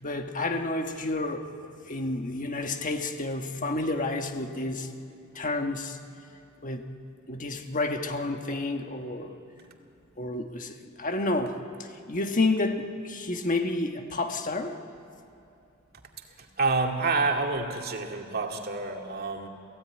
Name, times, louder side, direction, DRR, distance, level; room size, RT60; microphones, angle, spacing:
voice 1, 0.0-1.5 1.9-4.9 5.3-6.0 6.6-6.9 7.3-9.4 10.2-14.8, left 2 dB, 40° left, 5 dB, 1.4 m, -30 dB
voice 2, 16.4-19.5, right 3 dB, 50° right, 2 dB, 2.3 m, -28 dB
29.5 x 16.5 x 9.8 m, 2.7 s
head